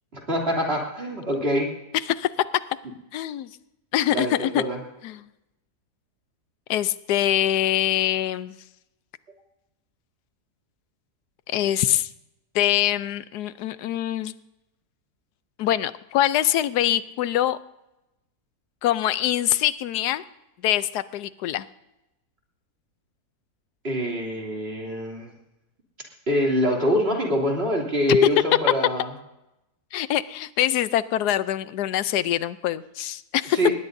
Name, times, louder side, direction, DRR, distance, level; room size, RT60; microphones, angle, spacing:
voice 1, 0.1-1.7 4.1-4.8 23.8-25.3 26.3-29.1 33.5-33.7, equal, 40° right, -1 dB, 3.2 m, -24 dB
voice 2, 2.1-2.5 3.1-3.5 3.9-4.6 5.0-5.3 6.7-8.6 11.5-12.1 12.5-14.3 15.6-17.6 18.8-20.2 20.6-21.6 28.1-28.2 29.9-33.6, left 12 dB, 85° left, 15 dB, 1.2 m, -24 dB
20.5 x 18.0 x 2.7 m, 0.94 s
omnidirectional pair, 1.7 m